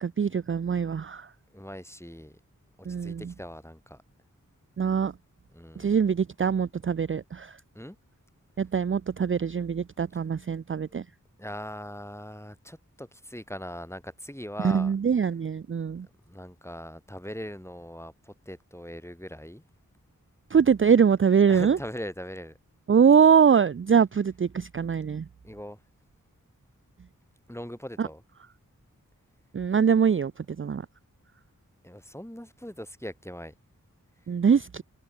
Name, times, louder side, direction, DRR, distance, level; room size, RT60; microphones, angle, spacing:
voice 1, 0.0-1.3 2.9-3.3 4.8-5.1 5.8-7.5 8.6-11.0 14.6-16.1 20.5-21.8 22.9-25.2 28.0-28.1 29.5-30.3 30.6-30.8 34.3-34.8, right 7 dB, 40° right, 0.4 m, -23 dB
voice 2, 1.5-2.3 3.0-4.0 5.5-5.9 7.7-8.0 11.4-14.9 16.3-19.6 21.5-22.6 25.4-25.8 27.5-28.2 31.8-33.5, equal, 10° left, 7.5 m, -40 dB
wide cardioid pair, 50°, 33 cm